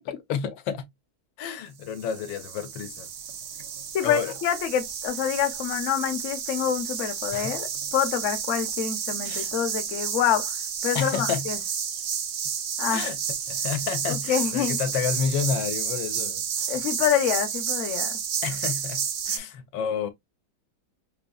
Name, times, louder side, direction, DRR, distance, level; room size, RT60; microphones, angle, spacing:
voice 1, 0.1-0.9 1.4-3.1 4.0-4.3 7.3-7.6 9.2-9.5 10.9-11.5 12.9-13.2 13.5-16.8 18.4-20.1, left 7 dB, 90° left, 1.4 m, -30 dB
sound 1, 1.9-19.4, right 7 dB, 80° right, 0.5 m, -31 dB
voice 2, 3.9-10.6 10.8-11.6 12.8-13.0 14.1-14.8 16.7-18.1, left 9 dB, 55° left, 0.9 m, -26 dB
5.1 x 2.6 x 2.3 m
omnidirectional pair, 2.0 m